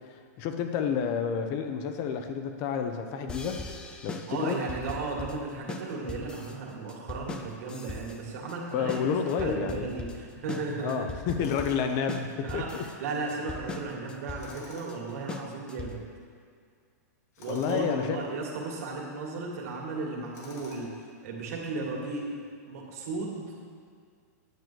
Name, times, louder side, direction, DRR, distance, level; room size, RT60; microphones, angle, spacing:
voice 1, 0.1-3.7 4.0-4.6 8.7-9.9 10.8-12.8 17.5-18.2, left 7 dB, 35° left, 7 dB, 0.8 m, -30 dB
sound 1, 3.3-16.2, left 3 dB, 10° left, 0.4 m, -40 dB
voice 2, 4.3-9.1 9.4-11.1 12.4-16.0 17.4-20.9 21.2-22.3 22.7-23.5, right 3 dB, 60° right, -2 dB, 2.2 m, -35 dB
Tools, 11.4-12.0 14.4-15.1 17.3-17.9 20.3-21.0, left 2 dB, 65° left, 2.2 m, -48 dB
9.5 x 7.5 x 4.5 m, 2.1 s
supercardioid pair, 160°, 9 cm